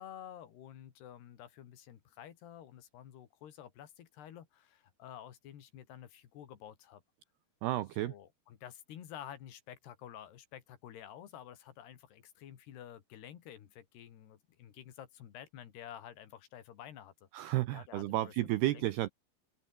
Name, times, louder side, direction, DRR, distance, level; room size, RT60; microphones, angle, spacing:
voice 1, 0.0-7.0 8.0-17.3 17.7-18.3 18.7-18.9, left 10 dB, 60° left, 3.9 m, -50 dB
voice 2, 7.6-8.1 17.3-19.1, right 16 dB, 85° right, 2.3 m, -32 dB
open air
omnidirectional pair, 5.9 m